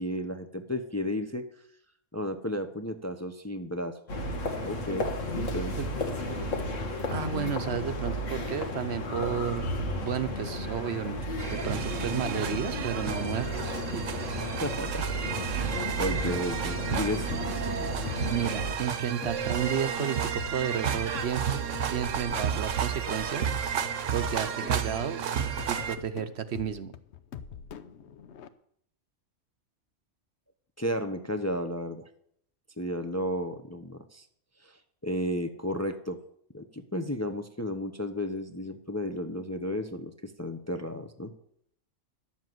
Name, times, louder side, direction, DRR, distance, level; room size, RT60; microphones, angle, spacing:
voice 1, 0.0-1.4 2.1-4.0 4.6-5.1 5.4-5.8 14.5-15.1 15.5-17.4 30.8-32.1 32.8-34.3 34.6-36.2 36.5-41.3, equal, 15° left, 7 dB, 0.7 m, -33 dB
sound 1, 4.1-18.7, equal, 85° left, 2.0 m, -33 dB
voice 2, 7.1-9.7 10.0-11.2 11.5-14.2 18.3-21.4 21.9-23.5 24.1-25.3 25.7-26.9, right 8 dB, 65° right, 11 dB, 1.0 m, -32 dB
sound 2, 11.4-26.0, right 7 dB, 85° right, 1.3 m, -32 dB
sound 3, 16.1-28.5, left 7 dB, 65° left, 1.0 m, -44 dB
12.0 x 7.4 x 7.8 m, 0.68 s
omnidirectional pair, 1.3 m